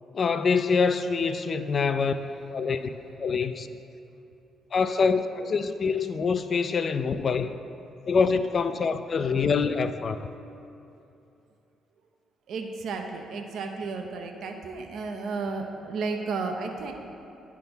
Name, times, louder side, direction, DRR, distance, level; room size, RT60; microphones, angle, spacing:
voice 1, 0.1-2.1 2.5-2.9 3.2-3.7 4.7-7.5 8.0-10.2, left 5 dB, 45° left, 9 dB, 0.3 m, -25 dB
voice 2, 12.5-16.9, right 4 dB, 75° right, 4 dB, 0.7 m, -33 dB
9.6 x 3.5 x 6.1 m, 2.7 s
cardioid pair, 90°, 0 cm